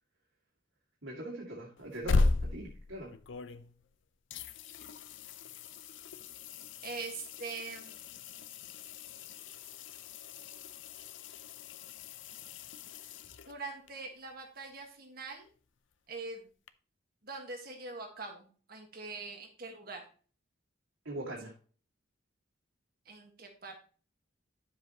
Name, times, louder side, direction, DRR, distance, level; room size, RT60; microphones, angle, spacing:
voice 1, 1.0-3.1 21.0-21.5, right 1 dB, 80° right, -4 dB, 2.3 m, -41 dB
sound 1, 1.8-3.9 4.3-13.9 16.7-16.8, left 3 dB, 70° left, 0.6 m, -37 dB
voice 2, 6.8-8.4 13.5-15.5 16.1-16.5 17.2-20.0 23.0-23.8, right 3 dB, 50° right, 2 dB, 1.7 m, -43 dB
10.5 x 7.2 x 3.0 m, 0.40 s
head